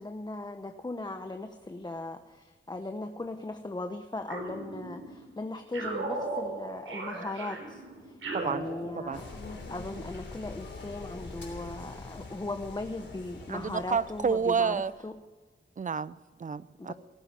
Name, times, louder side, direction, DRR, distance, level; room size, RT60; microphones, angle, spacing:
voice 1, 0.0-9.3 9.7-15.1 16.8-16.9, left 2 dB, 20° left, 6 dB, 1.0 m, -38 dB
sound 1, 4.3-5.2 5.7-9.4, right 3 dB, 85° right, 4.4 m, -37 dB
voice 2, 8.3-8.7 9.0-9.2 13.5-14.9 15.8-16.9, right 6 dB, 40° right, 18 dB, 0.5 m, -30 dB
sound 2, 9.1-14.9, left 3 dB, 60° left, 3.1 m, -44 dB
18.5 x 9.8 x 7.6 m, 1.4 s
wide cardioid pair, 100°, 20 cm